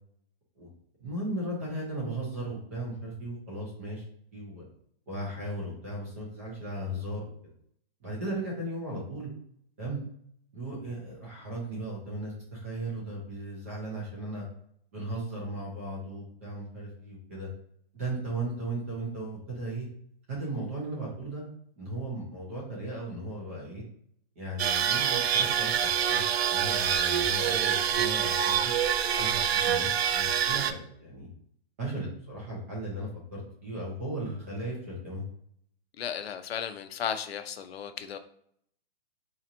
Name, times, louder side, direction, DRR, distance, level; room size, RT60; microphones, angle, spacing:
voice 1, 1.0-4.0 4.3-4.6 5.1-7.3 8.0-9.3 9.8-10.0 10.5-14.4 14.9-17.5 17.9-19.9 20.3-21.4 21.8-23.8 24.4-25.7 26.1-26.2 26.5-28.7 29.1-31.3 31.8-35.2, right 1 dB, 15° right, -4 dB, 0.6 m, -36 dB
sound 1, 24.6-30.7, right 9 dB, 85° right, 0.5 m, -26 dB
voice 2, 36.0-38.2, left 8 dB, 80° left, 9 dB, 0.5 m, -35 dB
4.2 x 2.9 x 2.5 m, 0.68 s
hypercardioid pair, 175°, 30 cm